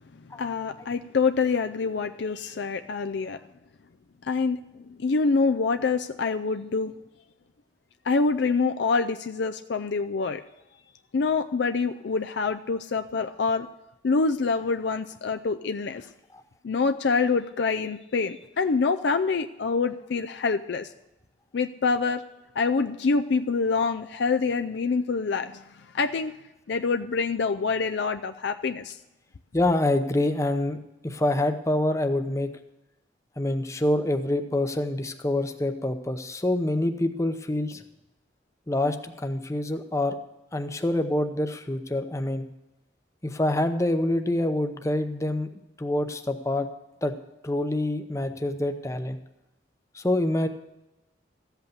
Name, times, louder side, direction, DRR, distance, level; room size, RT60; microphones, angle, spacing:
voice 1, 0.4-3.4 4.2-4.6 5.0-6.9 8.1-10.4 11.1-13.7 14.0-16.1 16.6-20.9 21.5-22.2 22.6-25.6 25.9-26.3 26.7-29.0, left 4 dB, 65° left, 8 dB, 0.4 m, -26 dB
voice 2, 29.5-30.8 31.0-32.5 33.4-37.8 38.7-40.2 40.5-42.5 43.2-46.7 47.0-47.1 47.4-49.2 49.9-50.5, left 1 dB, 15° left, 7 dB, 0.7 m, -26 dB
14.0 x 8.1 x 6.9 m, 0.94 s
head